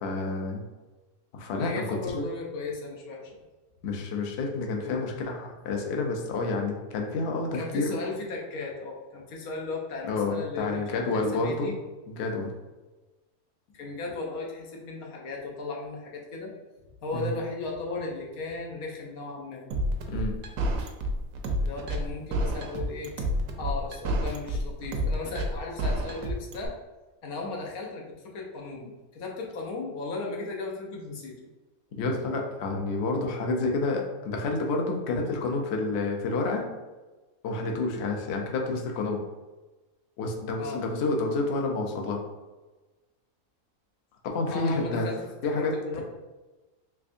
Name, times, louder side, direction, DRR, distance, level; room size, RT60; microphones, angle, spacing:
voice 1, 0.0-0.6 1.3-2.2 3.8-7.9 10.1-11.7 12.1-12.5 17.1-17.3 20.1-20.3 32.0-36.7 37.4-39.2 40.2-42.2 44.3-45.1 45.4-45.7, left 3 dB, 60° left, 1 dB, 0.7 m, -29 dB
voice 2, 1.6-3.4 4.9-5.1 7.5-11.8 13.7-16.5 17.0-19.7 21.6-23.1 23.6-26.7 27.2-31.5 40.6-40.8 44.5-45.3 45.6-46.0, left 3 dB, 90° left, -1 dB, 1.2 m, -36 dB
sound 1, 19.7-26.7, right 1 dB, 75° right, 1.0 m, -29 dB
3.5 x 3.3 x 2.5 m, 1.2 s
omnidirectional pair, 1.5 m